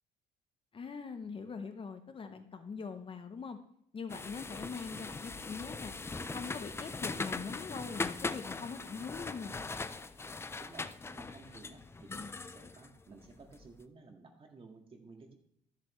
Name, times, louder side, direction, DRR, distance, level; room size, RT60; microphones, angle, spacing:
voice 1, 0.7-3.6 3.9-5.9 6.3-9.6 12.1-12.4, left 5 dB, 30° left, 8 dB, 0.8 m, -43 dB
sound 1, 4.1-13.6, left 3 dB, 15° left, 0.4 m, -40 dB
voice 2, 10.6-15.3, right 3 dB, 35° right, 4 dB, 1.9 m, -55 dB
13.0 x 7.6 x 3.2 m, 0.70 s
cardioid pair, 110°, 17 cm